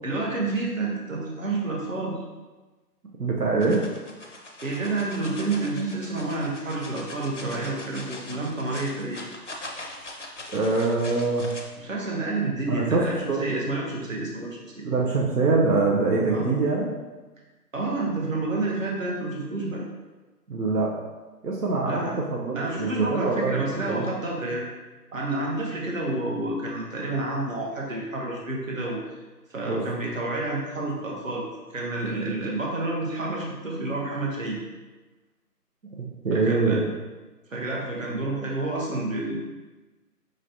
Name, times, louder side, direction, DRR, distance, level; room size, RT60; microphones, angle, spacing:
voice 1, 0.0-2.2 4.6-9.2 11.8-14.8 16.3-16.6 17.7-19.8 21.9-22.1 22.5-24.6 25.1-29.0 29.5-31.4 31.7-34.6 36.3-36.8 37.5-39.4, right 2 dB, 55° right, -2 dB, 1.0 m, -29 dB
voice 2, 3.2-3.8 10.5-11.5 12.7-13.4 14.8-16.9 20.5-20.9 21.4-24.1 29.6-29.8 36.2-36.9, right 3 dB, 75° right, -3 dB, 0.8 m, -24 dB
sound 1, 3.6-11.6, left 2 dB, 50° left, 0.5 m, -41 dB
5.1 x 3.1 x 2.7 m, 1.2 s
figure-of-eight pair, 170°, 47 cm